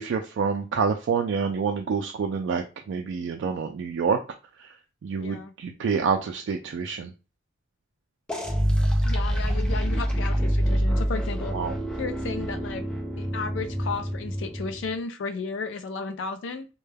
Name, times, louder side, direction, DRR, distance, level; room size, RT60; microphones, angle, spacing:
voice 1, 0.0-4.2 4.6-4.7 5.0-7.1 11.5-11.7, right 5 dB, 70° right, 3 dB, 0.3 m, -27 dB
voice 2, 5.2-5.5 9.0-11.5 12.0-12.8 13.2-16.7, left 4 dB, 80° left, 9 dB, 0.4 m, -34 dB
sound 1, 8.3-14.9, equal, 5° left, 0.5 m, -26 dB
2.2 x 2.2 x 3.3 m, 0.31 s
head